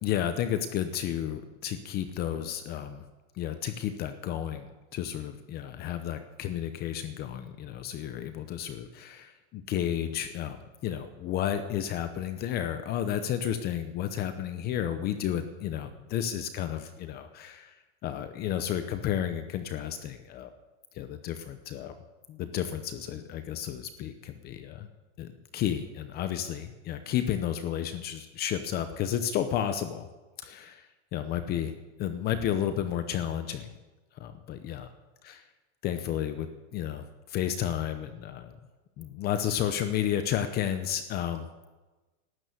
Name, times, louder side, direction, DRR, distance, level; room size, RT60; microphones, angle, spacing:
voice 1, 0.0-3.0 3.3-17.8 18.0-20.5 20.9-21.9 22.3-24.9 25.2-30.1 30.4-31.7 32.0-33.8 34.1-34.9 35.2-35.4 35.8-38.5 39.0-41.7, left 10 dB, 25° left, 9 dB, 0.7 m, -32 dB
12.5 x 9.1 x 9.3 m, 1.2 s
supercardioid pair, 155°, 35 cm